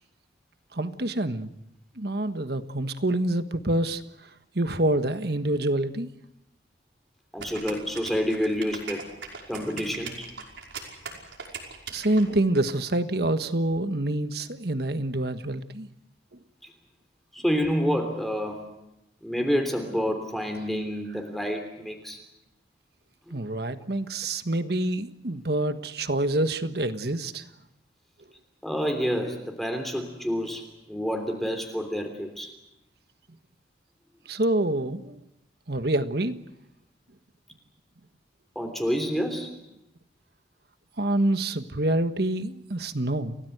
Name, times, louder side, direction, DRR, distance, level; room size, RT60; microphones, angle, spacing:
voice 1, 0.7-1.5 2.0-4.0 4.5-6.1 11.9-15.9 23.3-27.5 34.3-35.2 35.7-36.4 41.0-43.4, right 1 dB, 55° right, 10 dB, 1.4 m, -26 dB
voice 2, 7.3-9.1 9.5-10.3 16.6-16.7 17.3-18.7 19.2-22.2 28.6-32.5 38.5-39.5, equal, ahead, 4 dB, 3.2 m, -28 dB
sound 1, 7.4-12.7, right 5 dB, 75° right, 5.5 m, -39 dB
29.5 x 18.0 x 8.1 m, 0.87 s
head